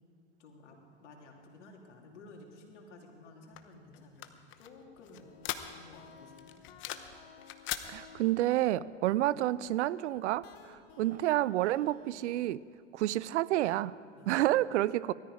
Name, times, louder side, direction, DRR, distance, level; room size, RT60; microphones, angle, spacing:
voice 1, 0.4-5.3 5.7-6.7 14.1-14.5, left 2 dB, 80° left, 1 dB, 3.0 m, -54 dB
sound 1, 3.5-6.1 6.4-7.2 7.4-7.9, left 13 dB, 35° left, 0.9 m, -40 dB
sound 2, 5.0-12.6, left 8 dB, 60° left, 1.7 m, -56 dB
voice 2, 7.9-12.6 12.9-13.9 14.3-15.1, right 15 dB, 75° right, 20 dB, 0.5 m, -29 dB
19.0 x 13.5 x 4.9 m, 2.2 s
hypercardioid pair, 120°, 35 cm